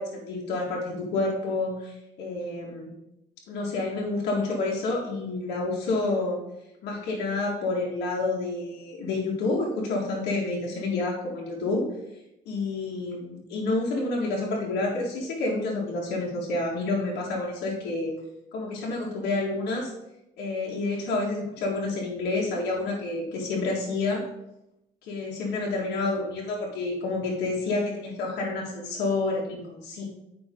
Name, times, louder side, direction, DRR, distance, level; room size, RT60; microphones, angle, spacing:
voice 1, 0.0-2.9 3.5-6.4 6.8-11.9 12.5-18.1 18.5-19.9 20.4-24.3 25.0-30.1, left 2 dB, 80° left, -3 dB, 2.0 m, -29 dB
8.7 x 5.4 x 3.9 m, 0.86 s
cardioid pair, 110°, 17 cm